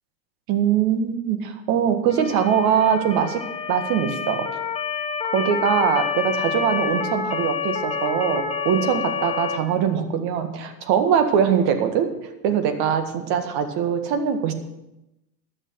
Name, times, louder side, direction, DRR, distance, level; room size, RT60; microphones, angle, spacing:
voice 1, 0.5-3.4 3.7-4.5 5.3-12.1 12.4-14.5, right 8 dB, 50° right, 8 dB, 1.8 m, -22 dB
Motor vehicle (road) / Siren, 2.1-9.6, left 6 dB, 15° left, 0.9 m, -28 dB
13.0 x 6.6 x 8.0 m, 0.91 s
hypercardioid pair, 95°, 48 cm